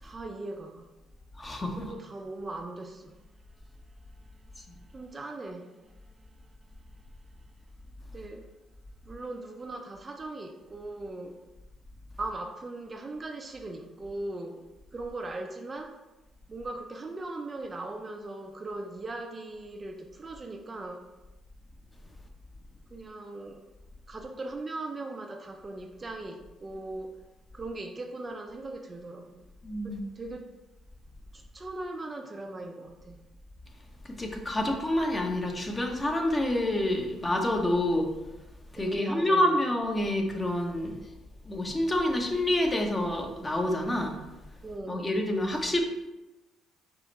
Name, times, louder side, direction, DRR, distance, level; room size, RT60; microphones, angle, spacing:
voice 1, 0.0-0.9 1.8-3.1 4.9-6.0 8.1-8.5 9.0-11.4 12.2-14.6 14.9-16.0 16.5-21.0 22.9-23.6 24.1-27.2 27.5-29.4 29.8-30.6 31.3-33.2 38.8-39.5 44.6-45.1, right 2 dB, 30° right, 4 dB, 0.4 m, -39 dB
voice 2, 1.4-1.9 29.6-30.0 34.0-38.1 38.7-40.9 41.5-44.2 44.9-45.8, left 1 dB, 20° left, 3 dB, 0.8 m, -28 dB
4.7 x 2.5 x 4.1 m, 1.0 s
supercardioid pair, 80°, 0 cm